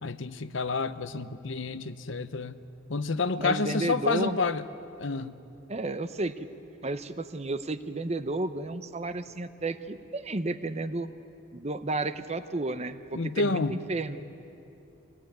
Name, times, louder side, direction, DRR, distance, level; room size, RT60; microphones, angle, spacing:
voice 1, 0.0-2.6 2.9-4.6 5.0-5.4 13.1-13.8, left 4 dB, 65° left, 0.8 m, -29 dB
voice 2, 3.4-4.4 5.7-6.4 6.8-11.1 11.5-14.2, right 2 dB, 30° right, 0.7 m, -32 dB
24.0 x 18.0 x 9.3 m
head